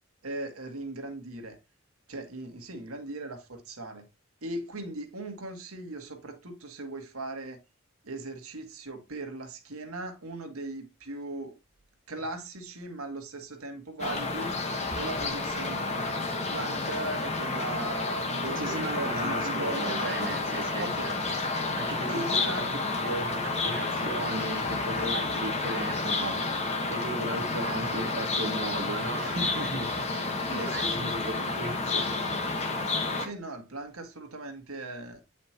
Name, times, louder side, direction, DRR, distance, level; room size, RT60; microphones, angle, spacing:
voice 1, 0.2-1.6 2.1-4.0 4.4-7.6 8.0-11.5 12.1-14.7 14.9-20.2 20.8-21.2 22.1-22.8 30.5-31.5 33.2-35.2, right 2 dB, 90° right, 1.6 m, -38 dB
sound 1, 14.0-33.2, left 3 dB, 30° left, 1.2 m, -30 dB
voice 2, 18.5-20.9 21.7-22.2 22.5-22.6 23.0-26.3 26.9-30.4 30.7-32.0, right 2 dB, 60° right, 1.2 m, -36 dB
8.6 x 5.1 x 2.9 m
head